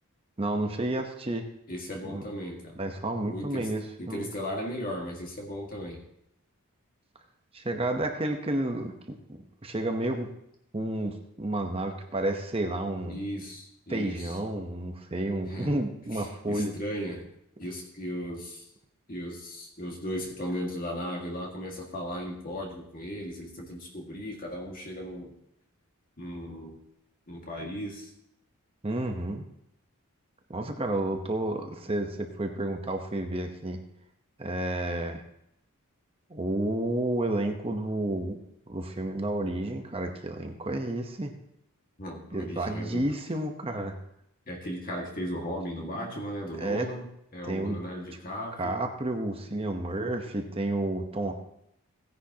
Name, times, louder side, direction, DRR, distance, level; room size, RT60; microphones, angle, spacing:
voice 1, 0.4-1.5 2.0-2.2 2.8-4.3 7.5-10.3 10.7-13.2 13.9-16.7 28.8-29.5 30.5-33.8 34.4-35.2 36.3-38.4 38.7-41.3 42.3-43.9 46.6-46.9 47.4-47.8 48.6-51.3, right 1 dB, 25° right, 4 dB, 0.9 m, -31 dB
voice 2, 1.7-2.8 3.2-3.7 4.0-6.0 13.1-14.4 15.5-15.7 16.1-17.3 17.6-18.7 19.1-25.3 26.2-26.8 27.3-28.1 42.0-43.1 44.5-47.1 47.3-48.8, equal, 40° left, 0 dB, 1.9 m, -36 dB
17.0 x 10.0 x 2.9 m, 0.76 s
head